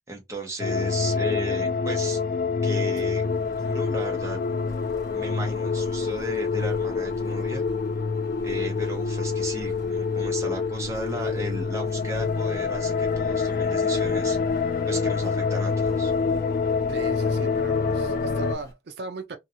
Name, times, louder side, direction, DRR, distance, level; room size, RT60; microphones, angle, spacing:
voice 1, 0.1-2.2 2.6-3.2 3.6-4.4 5.1-7.6 8.4-14.4 14.9-16.1, right 1 dB, 15° right, 0.8 m, -35 dB
sound 1, 0.6-18.5, left 5 dB, 50° left, 0.3 m, -26 dB
Engine, 2.7-18.7, equal, 20° left, 0.9 m, -47 dB
voice 2, 16.9-19.4, right 3 dB, 70° right, 0.4 m, -38 dB
2.7 x 2.2 x 2.7 m
head